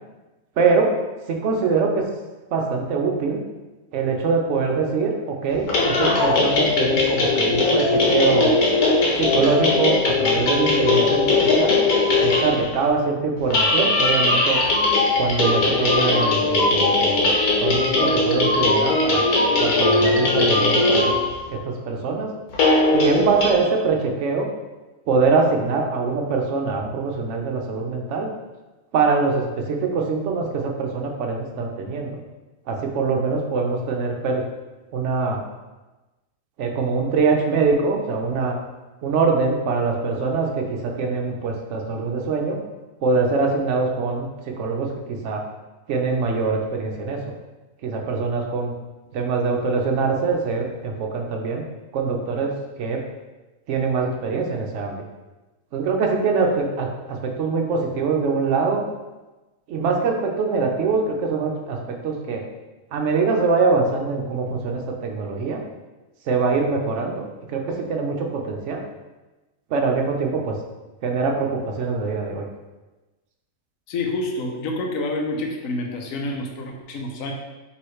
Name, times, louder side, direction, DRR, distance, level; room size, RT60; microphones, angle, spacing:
voice 1, 0.6-0.9 1.3-2.1 2.5-3.4 3.9-8.6 9.2-11.8 12.2-14.6 15.2-17.3 17.6-19.2 19.6-21.1 21.5-22.3 22.9-24.5 25.1-28.3 28.9-32.2 32.7-34.4 34.9-35.4 36.6-38.6 39.0-42.6 43.0-45.4 45.9-47.4 47.8-48.7 49.1-51.7 51.9-52.5 52.8-53.0 53.7-55.0 55.7-58.8 59.7-62.4 62.9-65.6 66.2-68.8 69.7-70.6 71.0-72.5, right 4 dB, 65° right, 2 dB, 0.9 m, -23 dB
sound 1, 5.5-12.8 13.4-21.5 22.5-23.5, left 3 dB, 85° left, 1.4 m, -19 dB
voice 2, 73.9-77.3, left 2 dB, 70° left, 1 dB, 1.0 m, -28 dB
4.6 x 3.1 x 3.1 m, 1.1 s
omnidirectional pair, 1.6 m